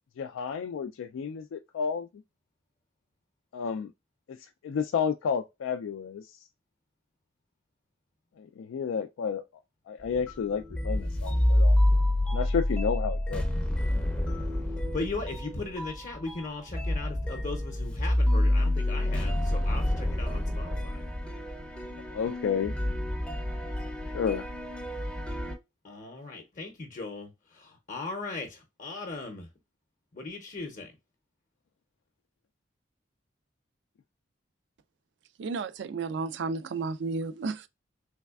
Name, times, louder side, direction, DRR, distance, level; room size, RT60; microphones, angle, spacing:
voice 1, 0.2-2.1 3.5-3.9 4.3-4.4 4.6-6.4 8.4-9.4 9.9-11.8 12.3-13.5 22.1-22.7 24.1-24.5, left 6 dB, 90° left, 0.3 m, -31 dB
sound 1, 10.1-25.5, left 1 dB, 5° left, 0.5 m, -28 dB
voice 2, 14.9-20.9 25.8-29.5 30.1-30.9, left 3 dB, 40° left, 0.6 m, -38 dB
voice 3, 35.4-37.7, right 4 dB, 60° right, 0.3 m, -32 dB
3.4 x 3.1 x 2.3 m
head